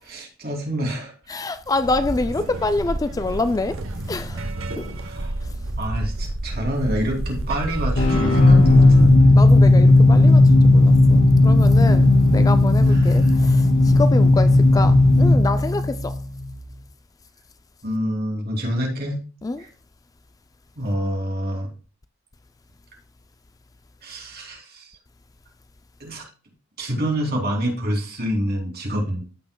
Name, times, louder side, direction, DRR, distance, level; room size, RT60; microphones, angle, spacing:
voice 1, 0.0-1.1 5.0-5.3 5.8-9.3 12.9-13.4 17.8-19.2 19.6-19.7 20.8-21.7 24.0-25.0 26.0-26.2 26.8-29.2, equal, 50° right, 2.8 m, -27 dB
voice 2, 1.3-3.8 4.1-4.4 4.8-4.9 9.3-16.2 19.4-19.6, left 2 dB, 15° left, 0.3 m, -26 dB
sound 1, 1.7-9.2, right 1 dB, 70° right, 0.9 m, -29 dB
sound 2, 8.0-16.6, left 2 dB, 80° left, 3.4 m, -14 dB
14.0 x 5.8 x 2.2 m
head